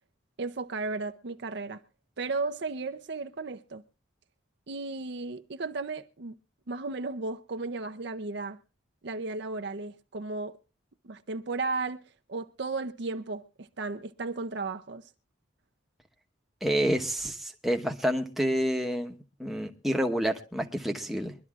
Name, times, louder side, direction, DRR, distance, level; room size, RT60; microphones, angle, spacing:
voice 1, 0.4-1.8 2.2-3.8 4.7-6.3 6.7-8.6 9.0-10.6 11.0-12.0 12.3-15.1, right 3 dB, 55° right, 0.6 m, -34 dB
voice 2, 16.6-19.1 19.4-21.3, equal, ahead, 1.0 m, -28 dB
23.5 x 12.0 x 2.4 m
head